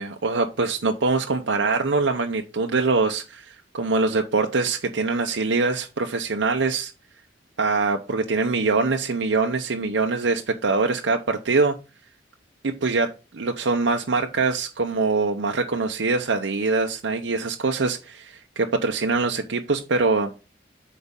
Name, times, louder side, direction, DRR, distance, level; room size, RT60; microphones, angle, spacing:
voice 1, 0.0-6.9 7.6-11.8 12.6-20.3, right 3 dB, 85° right, 4 dB, 0.7 m, -23 dB
8.1 x 5.1 x 3.6 m, 0.30 s
head